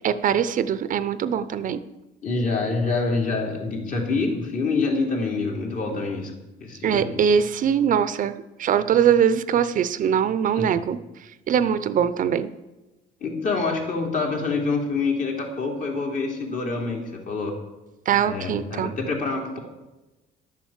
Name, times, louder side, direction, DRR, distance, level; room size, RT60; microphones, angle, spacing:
voice 1, 0.0-1.8 6.8-8.3 8.6-11.0 11.5-12.5 18.1-18.9, right 8 dB, 50° right, 13 dB, 0.6 m, -22 dB
voice 2, 2.2-6.3 6.6-7.2 10.5-10.7 13.2-17.6 18.2-19.6, left 3 dB, 50° left, 0 dB, 3.2 m, -26 dB
11.5 x 7.4 x 7.3 m, 1.1 s
cardioid pair, 110°, 17 cm